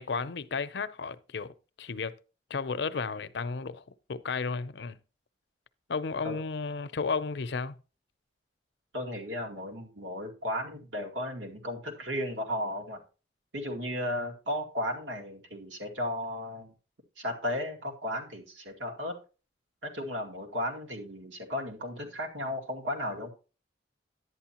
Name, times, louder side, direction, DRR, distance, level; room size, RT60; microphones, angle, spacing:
voice 1, 0.0-1.5 1.8-2.1 2.5-5.0 5.9-7.7, left 4 dB, 70° left, 0.6 m, -33 dB
voice 2, 8.9-13.0 13.5-16.7 17.2-19.1 19.8-23.3, left 1 dB, 85° right, 2.3 m, -35 dB
11.0 x 8.9 x 2.9 m
head